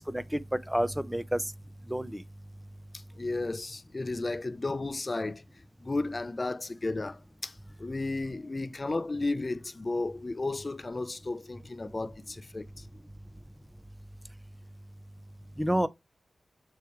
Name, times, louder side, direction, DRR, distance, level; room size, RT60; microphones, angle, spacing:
voice 1, 0.1-1.4 1.9-2.2 15.6-15.9, equal, 10° right, 0.9 m, -29 dB
voice 2, 3.2-5.4 5.8-12.7, left 2 dB, 40° left, 0.7 m, -33 dB
7.0 x 3.3 x 4.6 m
cardioid pair, 45°, 0 cm